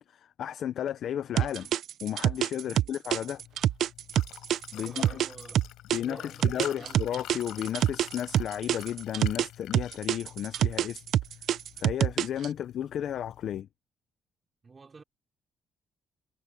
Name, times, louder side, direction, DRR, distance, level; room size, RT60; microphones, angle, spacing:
voice 1, 0.0-1.7 2.0-3.4 4.7-5.2 5.9-11.0 11.8-13.7, left 10 dB, 55° left, 0.6 m, -33 dB
sound 1, 1.4-6.0 6.4-9.5 9.7-12.5, right 11 dB, 60° right, 0.6 m, -26 dB
voice 2, 2.6-2.9 4.7-7.0 14.6-15.0, right 4 dB, 25° right, 3.7 m, -49 dB
Liquid, 3.1-13.6, left 14 dB, 85° left, 5.4 m, -48 dB
cardioid pair, 145°, 0 cm